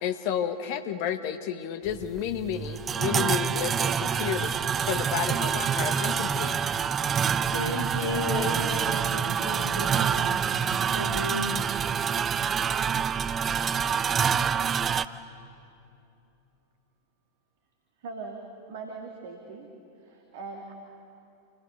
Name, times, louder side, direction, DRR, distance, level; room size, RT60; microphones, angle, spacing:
voice 1, 0.0-4.5 4.9-6.6, left 9 dB, 45° left, 1.6 m, -31 dB
sound 1, 1.9-15.1, right 7 dB, 25° right, 0.7 m, -27 dB
voice 2, 7.5-10.3 10.9-11.6, left 2 dB, 70° left, 4.3 m, -33 dB
voice 3, 18.0-18.4 18.7-19.7 20.0-20.7, right 4 dB, 55° right, 2.7 m, -40 dB
29.0 x 27.5 x 6.8 m
figure-of-eight pair, 90°, 0 cm